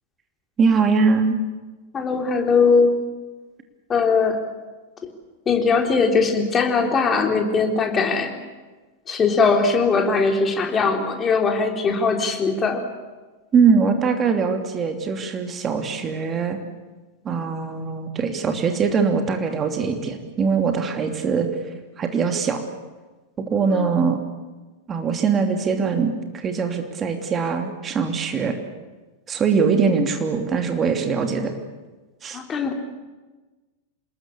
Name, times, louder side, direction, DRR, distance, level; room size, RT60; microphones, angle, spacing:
voice 1, 0.6-1.4 13.5-16.6 17.2-21.6 22.0-22.6 23.4-24.2 24.9-28.6 29.3-31.5 32.2-32.4, right 5 dB, 25° right, 5 dB, 3.0 m, -22 dB
voice 2, 1.9-2.9 3.9-4.4 5.5-8.3 9.1-12.8 23.7-24.0 32.3-32.8, left 4 dB, 20° left, 4 dB, 3.7 m, -20 dB
27.0 x 21.0 x 8.6 m, 1.3 s
figure-of-eight pair, 90°, 0 cm